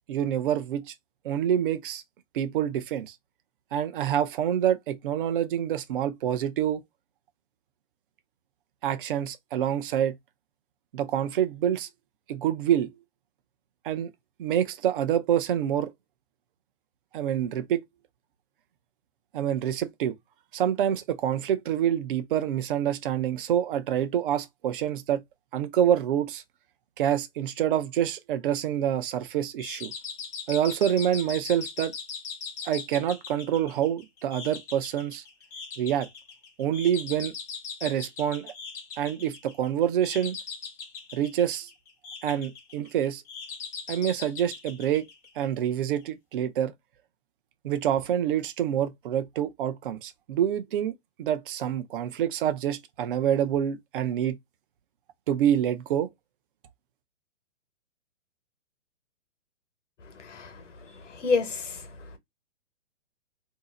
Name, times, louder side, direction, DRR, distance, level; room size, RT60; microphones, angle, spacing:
voice 1, 0.1-0.9 1.2-2.0 2.3-3.1 3.7-6.8 8.8-10.2 10.9-11.9 12.3-12.9 13.8-14.1 14.4-15.9 17.1-17.8 19.3-20.1 20.5-25.2 25.5-26.4 27.0-29.9 30.5-31.9 32.6-35.2 35.8-36.1 36.6-37.3 37.8-38.5 39.0-40.4 41.1-41.7 42.2-43.2 43.9-45.1 45.4-46.7 47.6-50.9 51.2-54.4 55.3-56.1, right 10 dB, 45° right, 0.5 m, -27 dB
sound 1, 29.6-45.7, left 5 dB, 15° left, 0.4 m, -40 dB
voice 2, 60.1-62.2, left 4 dB, 75° left, 1.1 m, -30 dB
2.7 x 2.0 x 3.6 m
hypercardioid pair, 140°, 37 cm